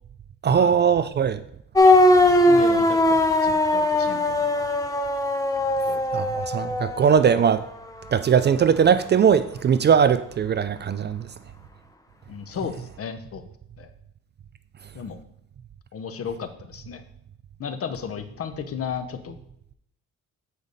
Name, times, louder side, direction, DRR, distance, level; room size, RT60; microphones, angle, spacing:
voice 1, 0.4-1.4 6.1-7.6 8.1-11.3, right 7 dB, 35° right, 0.4 m, -20 dB
sound 1, 1.8-7.4, left 1 dB, 10° left, 0.7 m, -20 dB
voice 2, 2.3-4.6 5.7-6.0 12.3-13.4 13.8-13.9 14.9-15.2 15.9-17.0 17.6-19.4, left 7 dB, 50° left, 0.9 m, -34 dB
8.1 x 5.0 x 4.0 m
cardioid pair, 90°, 30 cm